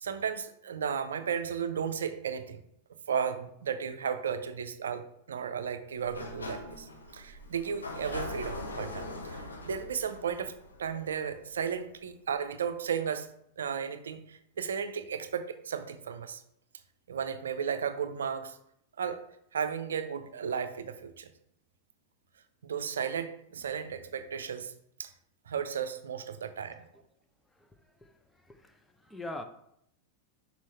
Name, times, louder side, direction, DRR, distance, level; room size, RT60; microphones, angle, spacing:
voice 1, 0.0-2.6 3.1-10.5 10.8-13.3 13.6-16.4 17.1-18.6 19.0-19.2 19.5-21.3 22.6-24.7 25.0-25.1 25.5-26.9, right 7 dB, 65° right, 10 dB, 0.5 m, -34 dB
Sliding door, 5.9-11.6, left 2 dB, 75° left, 0.8 m, -41 dB
voice 2, 27.5-29.4, left 2 dB, 10° left, 7 dB, 0.7 m, -45 dB
6.2 x 4.3 x 4.2 m, 0.74 s
figure-of-eight pair, 90°, 0 cm